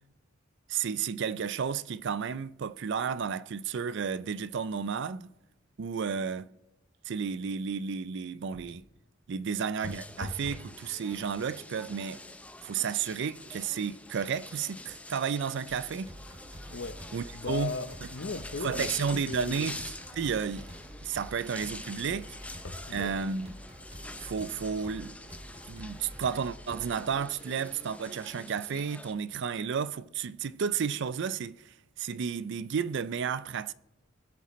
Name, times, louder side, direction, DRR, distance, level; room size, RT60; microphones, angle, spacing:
voice 1, 0.7-5.3 5.8-6.5 7.1-8.8 9.3-12.2 12.6-16.1 17.1-17.7 18.6-19.8 20.1-20.7 21.0-22.4 22.9-23.5 24.2-25.1 25.7-33.7, right 6 dB, 60° right, 0.4 m, -32 dB
sound 1, 8.5-8.9 9.8-10.7 11.1-11.6 12.3-12.5 12.9-16.4 16.9-17.0 17.7-20.4 22.6-23.2 23.8-23.9 24.2-24.3, left 1 dB, 80° left, 1.1 m, -48 dB
sound 2, 9.8-29.1, left 2 dB, 5° left, 0.5 m, -46 dB
sound 3, 15.7-27.0, right 1 dB, 30° right, 2.5 m, -48 dB
voice 2, 16.7-17.0 17.3-19.8 22.9-23.1, left 4 dB, 60° left, 0.8 m, -37 dB
24.0 x 8.2 x 3.1 m
head